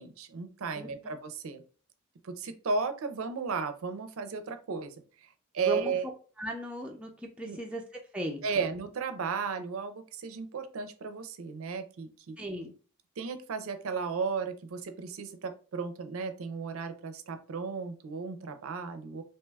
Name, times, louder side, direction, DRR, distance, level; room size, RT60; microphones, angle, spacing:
voice 1, 0.0-1.6 2.2-4.9 5.2-5.3 5.5-6.1 7.4-7.6 8.4-12.4 13.2-19.2, right 5 dB, 70° right, 8 dB, 0.4 m, -34 dB
voice 2, 6.4-7.1 7.4-7.8 8.1-8.4 12.4-12.7, right 1 dB, 5° right, 0 dB, 0.4 m, -36 dB
2.8 x 2.2 x 3.3 m, 0.38 s
head